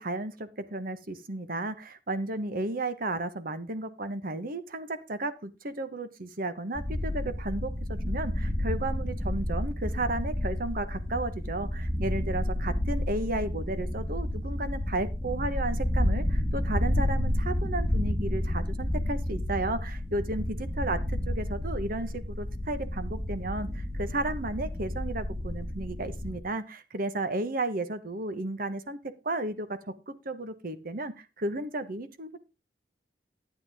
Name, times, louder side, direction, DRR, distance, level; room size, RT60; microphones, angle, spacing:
voice 1, 0.0-29.0 29.2-29.8 30.1-32.4, right 2 dB, 55° right, 11 dB, 1.2 m, -33 dB
sound 1, 6.7-26.4, left 1 dB, 15° right, 1.7 m, -30 dB
12.0 x 9.4 x 3.6 m, 0.27 s
head